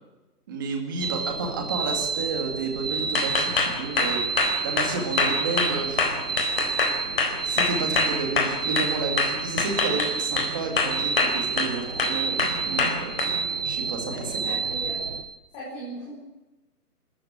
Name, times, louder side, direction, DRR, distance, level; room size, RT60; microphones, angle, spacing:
voice 1, 0.5-4.2 4.6-6.2 7.4-13.1 13.6-14.6, right 4 dB, 15° right, 3 dB, 2.1 m, -31 dB
sound 1, 1.0-15.2, right 5 dB, 40° right, 1.3 m, -30 dB
sound 2, 3.1-8.9 9.2-10.5 10.8-11.7 12.0-13.3, left 4 dB, 40° left, 4.4 m, -24 dB
voice 2, 14.0-15.0 15.5-16.2, equal, 10° left, -8 dB, 5.2 m, -38 dB
28.0 x 14.5 x 8.8 m, 1.1 s
hypercardioid pair, 180°, 46 cm